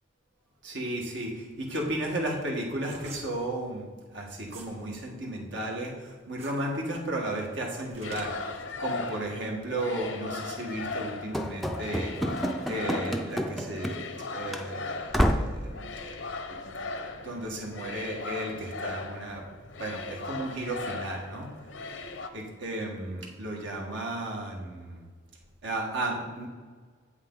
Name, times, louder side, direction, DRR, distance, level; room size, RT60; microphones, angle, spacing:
voice 1, 0.6-3.9 4.1-19.4 19.8-21.5 22.3-25.1 25.6-26.5, right 1 dB, 75° right, -1 dB, 1.7 m, -34 dB
sound 1, 1.5-4.8 5.2-8.5, right 3 dB, 30° right, 1.7 m, -48 dB
sound 2, 8.0-22.3, left 3 dB, 85° left, 0.7 m, -38 dB
Run / Slam, 11.3-14.2 14.5-14.6 15.1-15.6, equal, ahead, 0.4 m, -29 dB
8.2 x 8.2 x 3.9 m, 1.5 s
head